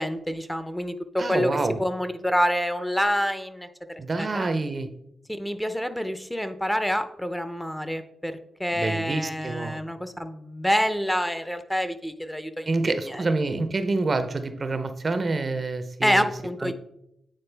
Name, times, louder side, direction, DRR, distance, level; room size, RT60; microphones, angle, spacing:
voice 1, 0.0-1.5 1.8-3.7 4.2-4.5 5.3-13.2 16.0-16.7, equal, 5° left, 9 dB, 0.6 m, -27 dB
voice 2, 1.2-1.8 4.0-4.9 8.7-9.8 12.7-16.3 16.6-16.7, right 3 dB, 45° right, 10 dB, 0.6 m, -27 dB
8.9 x 3.8 x 3.4 m, 0.80 s
cardioid pair, 55°, 0 cm